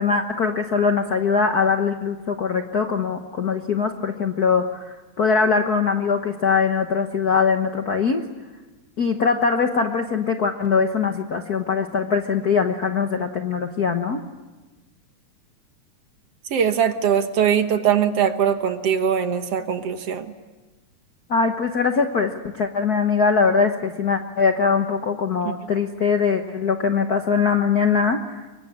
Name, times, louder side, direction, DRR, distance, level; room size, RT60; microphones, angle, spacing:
voice 1, 0.0-8.2 9.0-14.2 21.3-28.4, left 5 dB, 55° left, 6 dB, 1.0 m, -22 dB
voice 2, 16.5-20.3 25.4-25.6, right 8 dB, 60° right, 8 dB, 2.1 m, -21 dB
25.5 x 23.5 x 9.8 m, 1.2 s
omnidirectional pair, 3.4 m